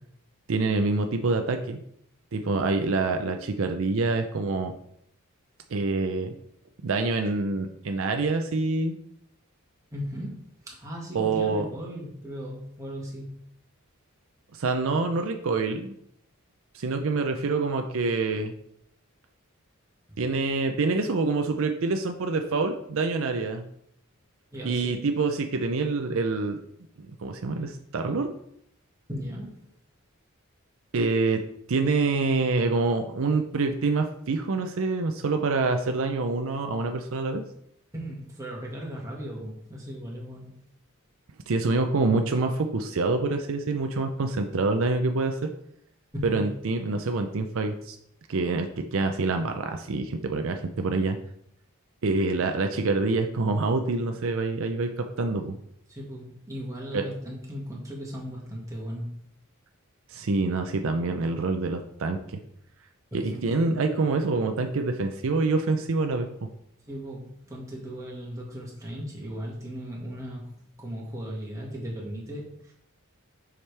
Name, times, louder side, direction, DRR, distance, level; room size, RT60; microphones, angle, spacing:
voice 1, 0.5-1.8 2.3-4.7 5.7-6.3 6.8-9.0 11.1-11.7 14.5-16.0 16.7-18.5 20.2-23.6 24.6-26.6 27.0-28.3 30.9-31.4 31.7-37.4 41.5-45.5 46.2-48.0 48.3-51.2 52.0-55.6 56.9-57.0 60.1-62.4 63.1-66.3, right 3 dB, 65° right, 6 dB, 0.5 m, -26 dB
voice 2, 9.9-13.3 20.1-20.3 24.5-25.0 29.1-29.7 37.9-40.5 46.1-46.5 55.9-59.1 63.1-64.1 66.9-70.5 70.8-72.7, equal, 15° right, -4 dB, 1.8 m, -37 dB
7.1 x 5.0 x 3.3 m, 0.73 s
head